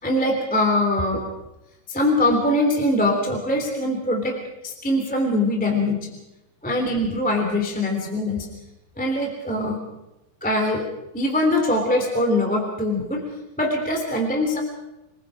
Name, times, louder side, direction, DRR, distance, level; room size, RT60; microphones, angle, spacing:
voice 1, 0.0-1.2 1.9-4.4 4.6-6.0 6.6-8.5 9.0-9.8 10.4-10.8 11.1-13.2 13.6-14.6, left 1 dB, 5° left, 2 dB, 2.1 m, -22 dB
26.5 x 21.5 x 5.0 m, 0.94 s
omnidirectional pair, 5.4 m